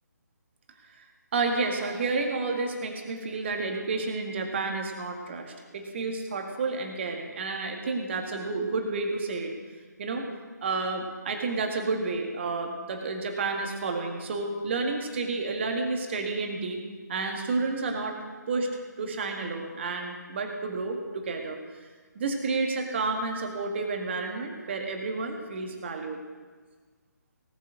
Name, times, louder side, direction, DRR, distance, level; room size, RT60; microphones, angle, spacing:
voice 1, 1.3-9.5 10.0-10.3 10.6-16.8 17.1-18.2 18.5-18.7 19.0-21.6 22.2-26.2, right 3 dB, 40° right, 3 dB, 1.9 m, -30 dB
18.0 x 8.4 x 5.0 m, 1.4 s
figure-of-eight pair, 150°, 10 cm